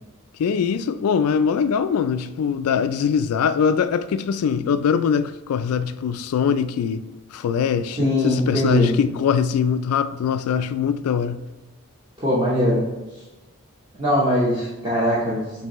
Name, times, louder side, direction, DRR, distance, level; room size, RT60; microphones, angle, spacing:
voice 1, 0.4-7.0 7.3-11.4, left 7 dB, 85° left, 0.3 m, -22 dB
voice 2, 8.0-9.0 12.2-12.8 14.0-15.7, equal, 20° right, 0.8 m, -21 dB
6.7 x 2.6 x 3.0 m
head